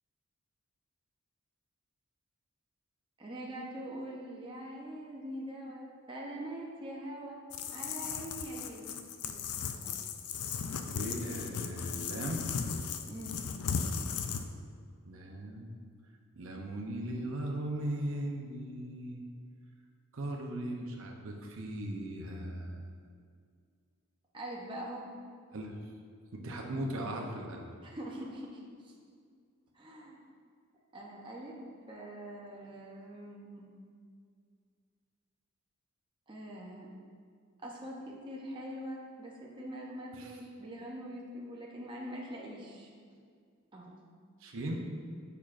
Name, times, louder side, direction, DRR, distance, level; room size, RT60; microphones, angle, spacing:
voice 1, 3.2-7.4 7.7-8.9 9.2-9.5 9.8-10.0 13.1-13.4 24.3-25.1 27.8-28.9 29.7-30.2 30.9-31.6 31.9-33.7 36.3-36.9 37.6-42.9 43.7-43.9, right 1 dB, 20° right, -3 dB, 0.6 m, -43 dB
sound 1, 7.5-14.4, left 6 dB, 85° left, 0.4 m, -36 dB
voice 2, 10.9-12.6 15.1-15.7 16.3-19.2 20.1-22.9 25.5-25.8 26.3-27.7 40.1-40.3 44.4-44.8, right 1 dB, 65° right, 1 dB, 0.7 m, -38 dB
6.7 x 5.7 x 2.5 m, 2.1 s
head